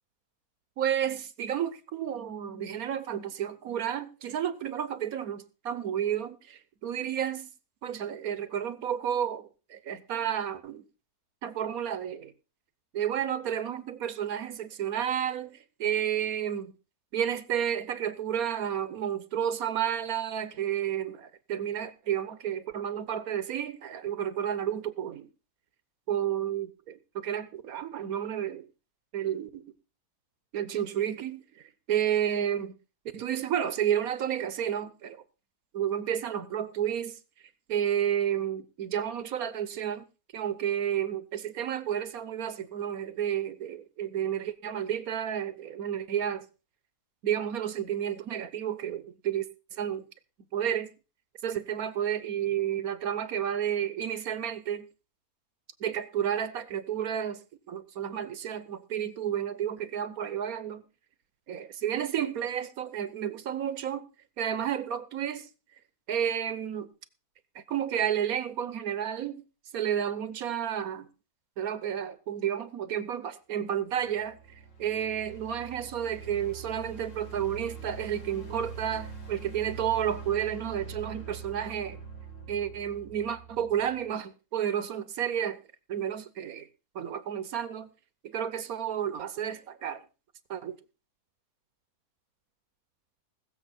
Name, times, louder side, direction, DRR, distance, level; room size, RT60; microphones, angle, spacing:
voice 1, 0.8-7.5 7.8-10.8 11.4-12.3 12.9-16.7 17.1-25.3 26.1-28.7 29.1-29.7 30.5-32.7 33.1-35.2 35.7-37.2 37.7-40.0 40.3-46.5 47.2-49.5 49.7-50.1 50.5-50.9 51.4-54.9 55.8-57.4 57.7-60.8 61.5-64.0 64.4-65.5 66.1-66.9 67.5-69.4 69.7-71.1 71.6-74.4 74.8-82.0 82.5-85.6 85.9-86.7 86.9-87.9 88.2-90.0 90.5-90.8, right 9 dB, 65° right, 1.3 m, -31 dB
sound 1, 73.9-84.1, right 5 dB, 50° left, 2.6 m, -44 dB
20.5 x 7.1 x 4.2 m
omnidirectional pair, 1.7 m